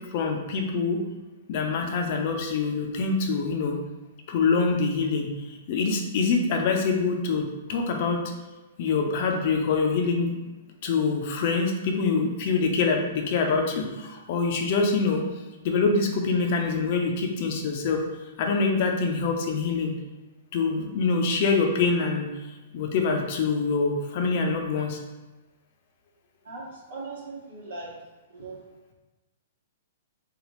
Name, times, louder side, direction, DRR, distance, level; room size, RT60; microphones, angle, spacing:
voice 1, 0.1-1.0 1.5-3.8 4.3-8.2 8.8-10.3 10.8-15.2 15.6-18.0 18.4-19.9 20.5-22.3 22.7-25.0, left 4 dB, 50° left, 2 dB, 0.6 m, -25 dB
voice 2, 26.4-28.0 28.3-28.6, right 3 dB, 65° right, -4 dB, 1.2 m, -39 dB
4.1 x 2.5 x 3.0 m, 1.1 s
figure-of-eight pair, 115°, 0 cm